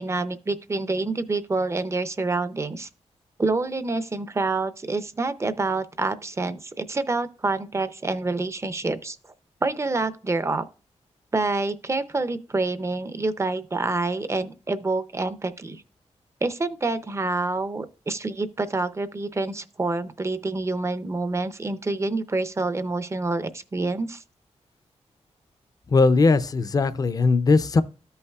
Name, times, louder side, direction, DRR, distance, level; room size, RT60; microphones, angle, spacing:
voice 1, 0.0-2.9 3.4-9.2 9.6-10.7 11.3-15.8 16.4-24.2, right 3 dB, 25° right, 0.5 m, -27 dB
voice 2, 25.9-27.8, left 3 dB, 30° left, 0.4 m, -19 dB
13.5 x 5.5 x 2.3 m
wide cardioid pair, 125°, 12 cm